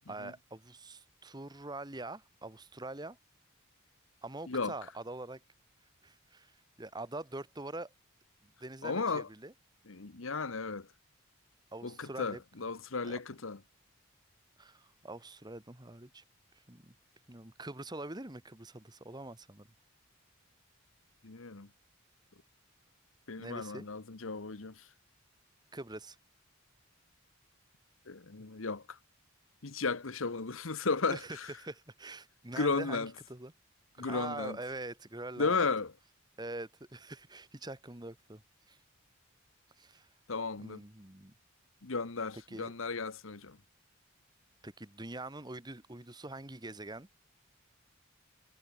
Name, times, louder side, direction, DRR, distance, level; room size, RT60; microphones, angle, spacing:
voice 1, 0.1-3.2 4.2-5.4 6.0-7.9 8.4-9.5 11.7-12.4 13.0-13.2 14.6-16.2 16.5-16.9 17.3-19.7 23.4-23.9 25.7-26.2 31.1-33.5 34.0-35.6 36.4-38.4 38.7-38.8 39.8-40.1 40.6-41.3 42.5-42.7 44.6-47.1, right 2 dB, 20° right, 1.6 m, -44 dB
voice 2, 8.8-9.3 9.9-10.9 11.8-13.6 21.2-21.7 23.3-24.7 28.1-29.0 29.6-31.2 32.6-33.1 34.0-34.6 35.4-35.9 40.3-40.8 41.8-43.6, left 4 dB, 70° left, 1.1 m, -34 dB
head